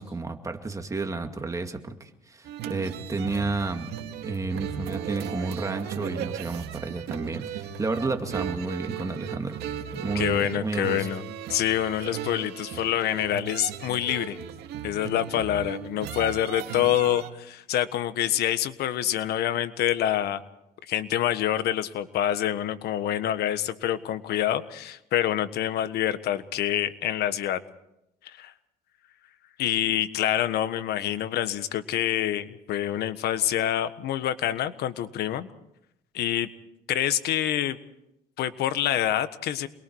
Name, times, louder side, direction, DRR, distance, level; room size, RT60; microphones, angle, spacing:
voice 1, 0.0-3.9 4.2-9.6 9.9-11.1, right 3 dB, 20° right, 5 dB, 2.3 m, -31 dB
sound 1, 2.5-17.3, right 9 dB, 75° right, 2.2 m, -36 dB
voice 2, 10.1-11.2 11.5-14.4 14.8-20.4 20.9-27.6 28.2-28.5 29.6-35.5 36.1-36.5 36.9-37.8 38.4-39.7, left 11 dB, 75° left, 12 dB, 1.4 m, -26 dB
28.5 x 22.0 x 4.8 m, 0.83 s
cardioid pair, 110°, 17 cm